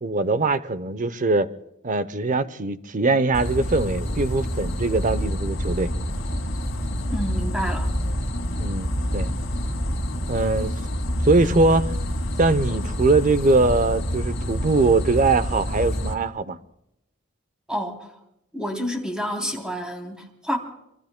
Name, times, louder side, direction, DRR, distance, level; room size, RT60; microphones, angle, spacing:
voice 1, 0.0-1.5 1.8-5.9 8.6-9.3 10.3-10.7 11.2-11.9 12.4-16.6, right 3 dB, 40° right, 0.7 m, -22 dB
sound 1, 3.3-16.1, equal, 65° left, 2.5 m, -27 dB
voice 2, 7.1-7.9 17.7-18.1 18.5-20.6, equal, 5° right, 3.1 m, -29 dB
26.5 x 24.0 x 2.2 m
head